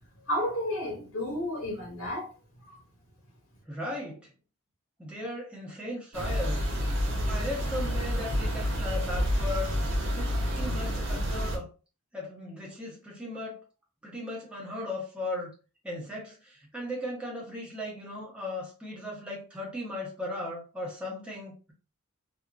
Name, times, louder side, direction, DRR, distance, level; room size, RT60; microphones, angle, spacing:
voice 1, 0.3-2.3, left 1 dB, 80° left, 1.0 m, -31 dB
voice 2, 3.7-4.3 5.0-6.6 7.2-11.7 12.1-13.6 14.0-15.5 15.8-21.7, left 1 dB, 5° right, 0.8 m, -37 dB
sound 1, 6.1-11.6, equal, 65° right, 0.8 m, -29 dB
2.7 x 2.4 x 2.4 m
head